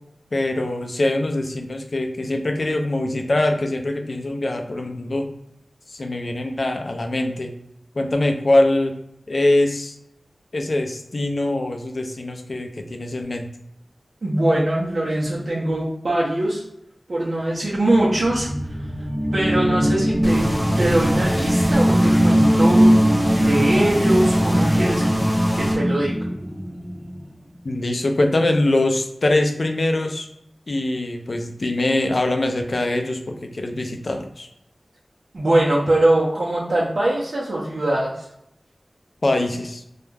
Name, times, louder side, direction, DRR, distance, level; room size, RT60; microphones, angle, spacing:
voice 1, 0.3-5.3 5.9-7.5 8.0-8.9 9.3-10.0 10.5-13.4 27.6-30.3 30.7-34.5 39.2-39.8, left 1 dB, 65° left, 4 dB, 0.4 m, -23 dB
voice 2, 14.2-16.6 17.1-18.5 19.3-20.5 20.8-22.9 23.4-25.2 25.5-26.1 35.3-38.3, right 1 dB, 75° right, -6 dB, 0.6 m, -22 dB
sound 1, 18.0-27.2, equal, 10° right, 0.4 m, -20 dB
sound 2, 20.2-25.7, equal, 30° left, 1.0 m, -25 dB
2.3 x 2.1 x 3.2 m, 0.79 s
wide cardioid pair, 50°, 0 cm